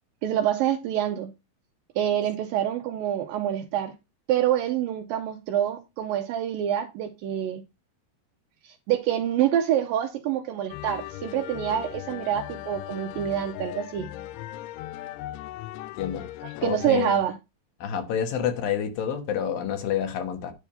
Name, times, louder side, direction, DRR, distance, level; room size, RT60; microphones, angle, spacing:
voice 1, 0.2-1.3 2.0-3.9 4.3-7.6 8.6-14.1 16.4-17.3, right 10 dB, 80° right, 2.1 m, -26 dB
sound 1, 10.7-16.9, left 15 dB, 90° left, 2.6 m, -38 dB
voice 2, 16.6-17.2 17.8-20.5, left 9 dB, 70° left, 2.8 m, -28 dB
10.0 x 3.5 x 5.6 m
omnidirectional pair, 4.5 m